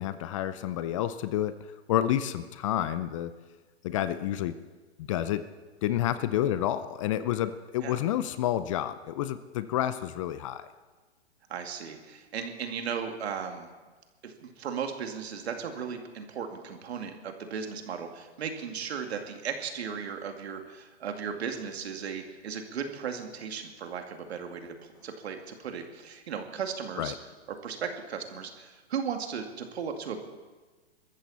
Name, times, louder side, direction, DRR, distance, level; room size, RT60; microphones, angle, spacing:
voice 1, 0.0-1.5 1.9-3.3 3.8-4.6 5.0-5.5 5.8-10.7 27.0-27.2, left 12 dB, 30° left, 13 dB, 0.5 m, -29 dB
voice 2, 11.5-13.7 14.2-24.7 25.0-27.1 27.6-30.2, right 7 dB, 65° right, 5 dB, 2.2 m, -36 dB
22.0 x 14.0 x 4.2 m, 1.3 s
hypercardioid pair, 135°, 34 cm